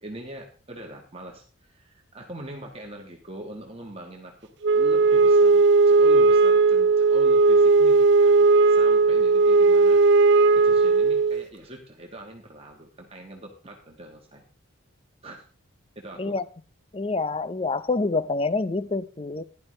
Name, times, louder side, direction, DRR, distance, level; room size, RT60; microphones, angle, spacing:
voice 1, 0.0-10.0 10.5-14.4 15.2-15.4 15.9-16.4, right 1 dB, 25° right, 1 dB, 1.4 m, -42 dB
Wind instrument woodwind instrument, 4.6-11.4, right 4 dB, 55° right, 0.5 m, -17 dB
voice 2, 16.9-19.4, left 3 dB, 25° left, 16 dB, 0.5 m, -27 dB
15.5 x 11.0 x 3.2 m, 0.38 s
head